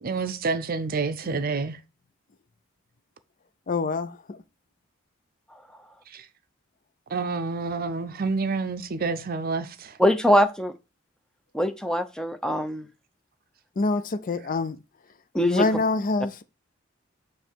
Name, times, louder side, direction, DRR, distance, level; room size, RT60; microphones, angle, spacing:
voice 1, 0.0-1.8 6.1-6.3 7.1-10.0, right 4 dB, 50° right, 0.6 m, -28 dB
voice 2, 3.7-4.4 13.8-14.8 15.4-16.4, left 3 dB, 45° left, 0.5 m, -26 dB
voice 3, 10.0-10.7 11.5-12.9 15.3-15.6, equal, 5° left, 0.7 m, -22 dB
7.1 x 3.2 x 4.5 m
head